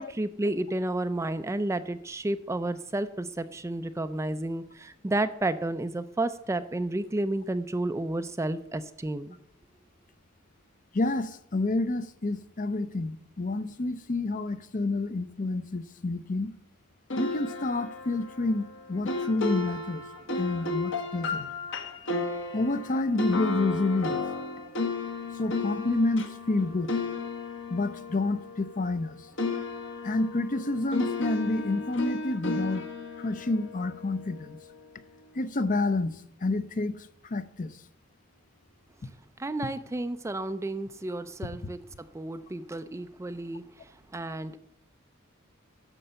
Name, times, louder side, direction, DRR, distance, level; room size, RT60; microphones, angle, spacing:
voice 1, 0.0-9.4 39.4-41.8 42.1-43.6 44.1-44.6, right 2 dB, 15° right, 0.4 m, -31 dB
voice 2, 10.9-16.5 17.2-20.1 20.4-21.5 22.5-24.3 25.3-27.0 27.7-29.3 30.0-32.9 33.2-34.6 35.3-37.8, left 2 dB, 40° left, 0.6 m, -29 dB
sound 1, 17.1-29.1 29.4-34.6, left 3 dB, 65° left, 1.3 m, -34 dB
9.9 x 6.4 x 6.8 m
head